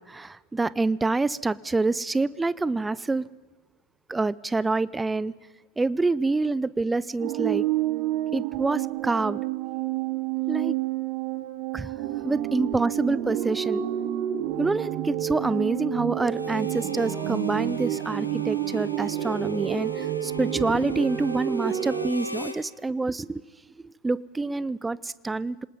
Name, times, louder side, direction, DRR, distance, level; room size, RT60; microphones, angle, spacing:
voice 1, 0.1-3.2 4.1-5.3 5.8-7.7 8.3-9.4 10.5-10.7 11.7-11.9 12.2-13.8 14.6-23.4 23.8-25.6, right 3 dB, 10° right, 0.5 m, -27 dB
sound 1, 7.2-22.1, right 13 dB, 40° right, 1.4 m, -29 dB
Harmonica, 16.3-22.6, left 2 dB, 85° left, 1.5 m, -39 dB
27.5 x 19.0 x 5.3 m
figure-of-eight pair, 90°, 0 cm